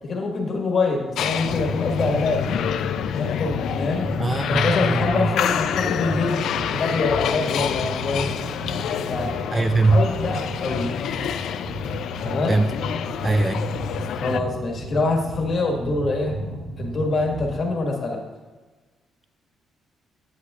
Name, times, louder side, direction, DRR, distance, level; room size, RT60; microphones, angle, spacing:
voice 1, 0.0-2.5 3.2-4.1 4.5-8.3 9.1-9.3 9.8-10.9 12.2-12.6 14.1-16.4 16.8-18.2, left 3 dB, 50° left, 1 dB, 1.6 m, -25 dB
sound 1, 1.2-14.4, left 9 dB, 75° left, 0.4 m, -27 dB
sound 2, 1.4-17.8, right 1 dB, 85° right, 1.6 m, -34 dB
voice 2, 4.2-5.3 9.5-10.1 12.5-12.7 13.2-13.7, right 2 dB, 20° right, 10 dB, 0.4 m, -21 dB
10.5 x 8.0 x 2.4 m, 1.3 s
cardioid pair, 90°, 0 cm